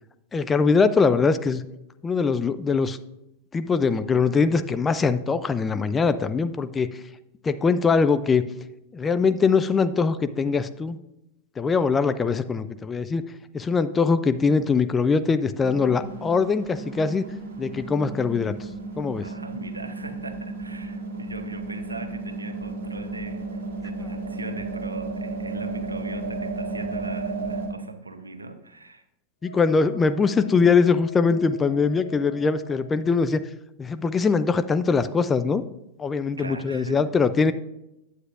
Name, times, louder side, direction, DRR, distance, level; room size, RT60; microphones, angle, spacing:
voice 1, 0.3-1.6 2.0-3.0 3.5-7.0 7.4-8.4 8.9-11.0 11.6-13.2 13.5-17.2 17.6-18.5 19.0-19.3 29.4-33.4 33.8-35.6 36.0-37.5, left 5 dB, 15° left, 11 dB, 0.3 m, -22 dB
sound 1, 15.6-27.7, right 3 dB, 50° right, 1.6 m, -33 dB
voice 2, 19.2-29.0 36.4-37.0, right 2 dB, 80° right, 9 dB, 0.6 m, -39 dB
Wind instrument woodwind instrument, 29.4-33.1, left 4 dB, 85° left, 0.7 m, -45 dB
9.6 x 7.8 x 2.4 m, 0.89 s
figure-of-eight pair, 90°, 0 cm